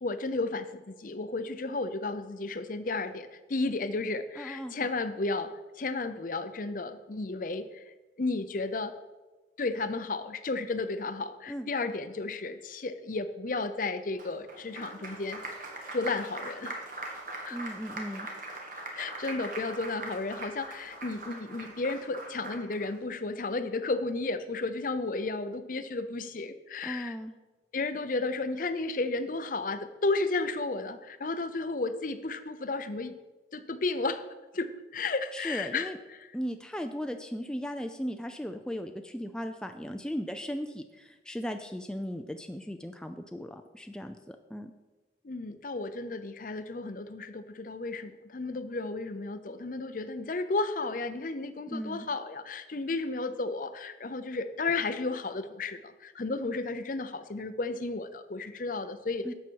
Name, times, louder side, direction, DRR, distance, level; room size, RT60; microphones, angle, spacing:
voice 1, 0.0-8.9 9.6-15.4 15.9-16.7 17.4-17.6 19.0-27.1 27.7-33.2 33.5-34.2 34.5-35.9 45.2-59.3, left 3 dB, 50° left, 11 dB, 0.6 m, -33 dB
voice 2, 4.4-4.7 11.5-11.7 17.5-18.3 26.8-27.3 35.3-36.0 36.3-44.7 51.7-52.1 59.2-59.3, equal, 5° left, 6 dB, 0.4 m, -37 dB
Applause, 14.2-22.9, right 2 dB, 50° right, 1.7 m, -41 dB
11.5 x 7.3 x 4.6 m, 1.2 s
head